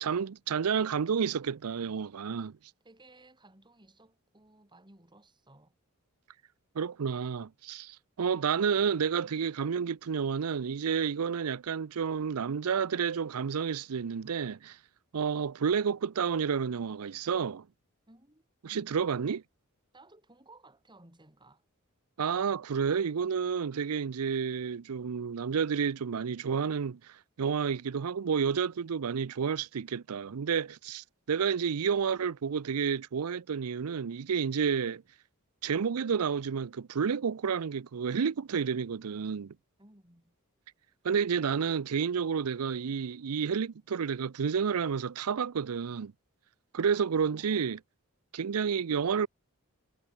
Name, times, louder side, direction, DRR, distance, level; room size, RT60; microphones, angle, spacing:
voice 1, 0.0-2.6 6.8-14.8 15.1-17.7 18.6-19.4 22.2-35.0 35.6-39.5 41.0-46.1 46.7-47.8 48.3-49.3, right 6 dB, 85° right, 0.5 m, -30 dB
voice 2, 2.8-5.8 18.1-18.9 19.9-21.7 39.8-40.4 46.8-47.7, right 2 dB, 20° right, 4.0 m, -58 dB
head